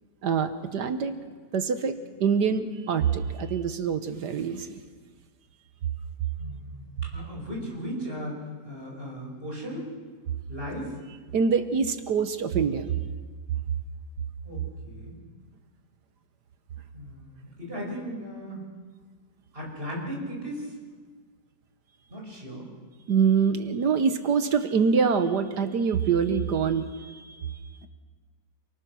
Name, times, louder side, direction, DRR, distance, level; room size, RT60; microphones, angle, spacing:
voice 1, 0.2-1.1 1.5-4.8 11.3-12.9 23.1-27.9, right 6 dB, 65° right, 9 dB, 1.6 m, -25 dB
voice 2, 6.4-8.4 8.6-9.9 10.5-10.9 14.4-15.2 16.9-18.7 19.5-20.7 22.1-22.7, equal, 30° right, -2 dB, 6.5 m, -37 dB
29.5 x 19.0 x 6.2 m, 1.5 s
omnidirectional pair, 2.0 m